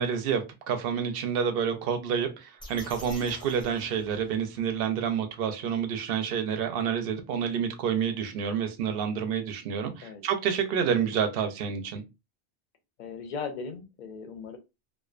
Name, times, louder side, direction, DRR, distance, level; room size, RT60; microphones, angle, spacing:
voice 1, 0.0-12.0, right 7 dB, 65° right, 0.7 m, -29 dB
sound 1, 2.6-4.7, left 1 dB, 5° left, 0.5 m, -46 dB
voice 2, 13.0-14.6, left 5 dB, 55° left, 0.6 m, -38 dB
2.4 x 2.2 x 2.4 m
omnidirectional pair, 1.1 m